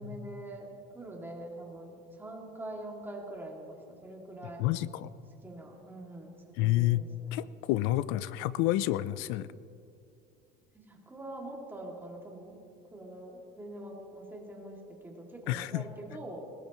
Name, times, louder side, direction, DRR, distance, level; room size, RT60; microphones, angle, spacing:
voice 1, 0.0-4.6 5.4-7.4 10.7-12.6 12.9-16.5, right 1 dB, 10° right, -1 dB, 2.5 m, -44 dB
voice 2, 4.6-5.1 6.6-7.0 7.3-9.5 15.5-15.8, left 15 dB, 75° left, 17 dB, 0.6 m, -29 dB
21.0 x 19.5 x 3.1 m, 2.4 s
cardioid pair, 140°, 21 cm